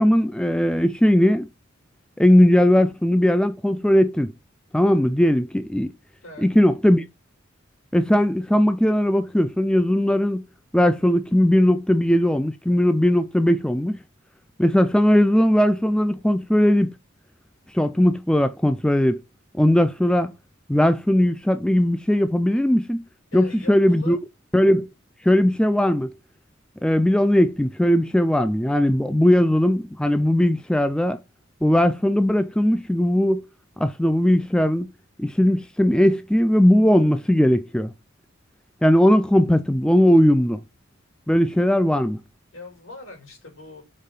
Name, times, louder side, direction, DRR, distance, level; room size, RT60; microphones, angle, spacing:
voice 1, 0.0-1.5 2.2-4.3 4.7-5.9 6.4-7.0 7.9-10.4 10.7-14.0 14.6-16.9 17.7-19.2 19.5-20.3 20.7-23.0 23.3-24.2 24.5-24.9 25.2-26.1 26.8-31.2 31.6-33.4 33.8-34.9 35.2-37.9 38.8-40.6 41.3-42.2, left 1 dB, 5° left, 0.3 m, -19 dB
voice 2, 6.2-6.5 23.3-24.2 42.5-43.8, left 2 dB, 80° left, 3.4 m, -41 dB
5.5 x 3.7 x 5.6 m
head